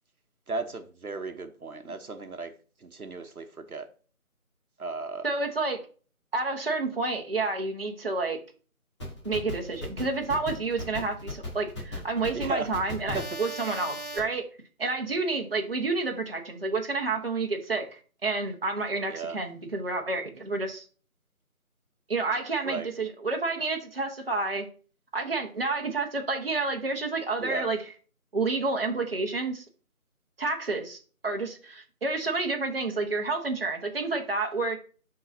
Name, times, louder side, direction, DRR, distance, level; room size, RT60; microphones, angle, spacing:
voice 1, 0.5-2.5 2.8-3.9 4.8-5.3 12.3-12.7 13.1-13.2 19.1-19.4 22.6-22.9 27.4-27.7, right 3 dB, 80° right, 8 dB, 1.1 m, -35 dB
voice 2, 5.2-5.8 6.3-8.4 9.2-14.5 14.8-20.8 22.1-24.7 25.1-27.8 28.3-29.6 30.4-31.0 31.2-34.8, right 3 dB, 40° right, 1 dB, 1.0 m, -29 dB
sound 1, 9.0-14.2, left 1 dB, 20° left, 2.0 m, -37 dB
11.0 x 3.9 x 2.7 m, 0.39 s
figure-of-eight pair, 170°, 43 cm